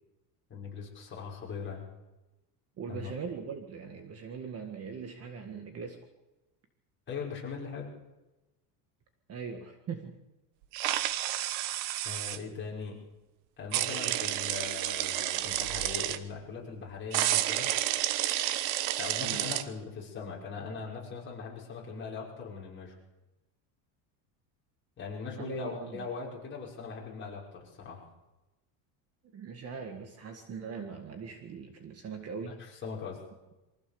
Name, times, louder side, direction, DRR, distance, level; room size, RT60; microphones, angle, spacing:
voice 1, 0.5-1.9 2.9-3.1 7.1-7.9 12.0-12.9 13.6-17.7 19.0-22.9 25.0-28.0 32.4-33.2, left 5 dB, 25° left, -3 dB, 5.9 m, -40 dB
voice 2, 2.8-6.0 9.3-10.2 19.2-19.5 25.4-26.1 29.3-32.6, right 6 dB, 30° right, 5 dB, 1.8 m, -40 dB
sound 1, 10.7-12.4 13.7-16.2 17.1-19.6, right 14 dB, 65° right, 1.3 m, -30 dB
24.0 x 15.5 x 7.0 m, 1.0 s
cardioid pair, 165°, 49 cm